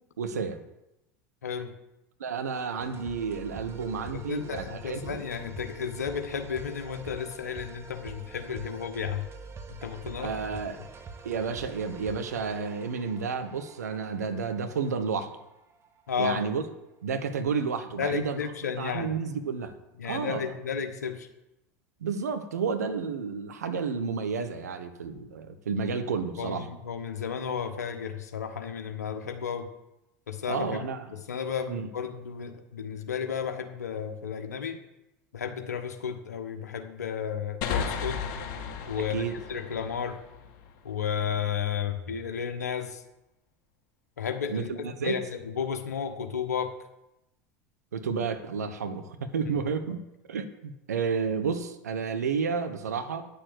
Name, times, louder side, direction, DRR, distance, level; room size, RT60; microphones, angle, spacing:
voice 1, 0.2-0.6 2.2-5.2 10.2-10.8 11.2-15.4 16.2-16.6 17.0-18.4 18.8-19.7 20.0-20.4 22.0-26.7 30.5-31.1 31.7-31.9 39.1-39.4 44.5-45.2 47.9-50.0 50.3-53.2, right 5 dB, 80° right, 9 dB, 1.2 m, -31 dB
voice 2, 1.4-1.7 4.3-9.3 9.8-10.3 16.1-16.4 18.0-19.1 20.0-21.3 26.4-29.7 30.3-30.8 31.1-34.8 35.3-38.2 38.9-39.2 39.5-40.2 40.8-43.0 44.2-46.7, left 7 dB, 80° left, 6 dB, 1.3 m, -33 dB
sound 1, 2.8-16.2, right 4 dB, 30° right, 1.3 m, -46 dB
sound 2, 37.6-41.1, left 6 dB, 55° left, 2.0 m, -34 dB
10.0 x 6.8 x 8.0 m, 0.90 s
figure-of-eight pair, 80°, 9 cm